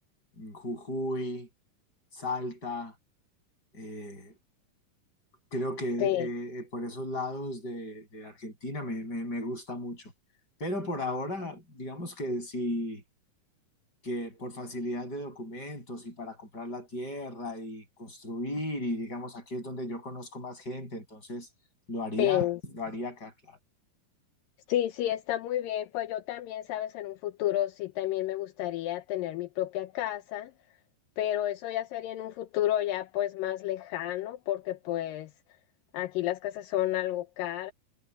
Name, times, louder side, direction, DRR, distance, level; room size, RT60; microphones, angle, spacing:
voice 1, 0.4-1.5 2.1-2.9 3.7-4.3 5.5-10.1 10.6-13.0 14.0-21.5 21.9-22.5 22.8-23.6, left 1 dB, 25° left, 8.1 m, -35 dB
voice 2, 22.2-22.6 24.7-30.5 31.2-35.3 35.9-37.7, left 13 dB, 75° left, 2.5 m, -31 dB
omnidirectional pair, 4.1 m